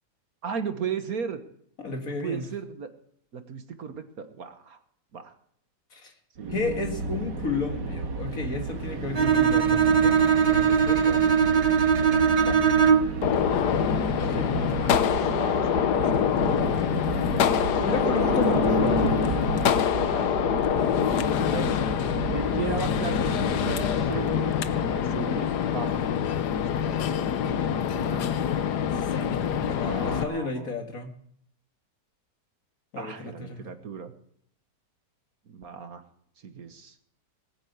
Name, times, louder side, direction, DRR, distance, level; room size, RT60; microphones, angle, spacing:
voice 1, 0.4-1.4 2.1-2.9 3.3-4.8 5.1-5.3 6.4-6.5 14.8-15.1 15.4-16.8 17.1-18.3 18.6-18.7 20.1-20.8 21.3-24.5 24.8-26.0 26.8-28.4 29.8-30.7 33.0-34.1 35.5-36.0 36.4-36.9, right 6 dB, 60° right, 8 dB, 1.6 m, -37 dB
voice 2, 1.8-2.5 5.9-6.1 6.5-10.2 10.5-11.2 12.5-12.6 14.2-14.6 17.8-19.2 28.9-31.1 32.9-33.6, left 4 dB, 50° left, 4 dB, 2.3 m, -32 dB
sound 1, 6.4-25.1, right 4 dB, 80° right, 2.1 m, -32 dB
Bowed string instrument, 9.1-13.2, right 7 dB, 35° right, 0.7 m, -20 dB
Gunshot gunfire, 13.2-30.2, left 9 dB, 70° left, 1.4 m, -25 dB
19.5 x 8.7 x 8.1 m, 0.66 s
omnidirectional pair, 1.9 m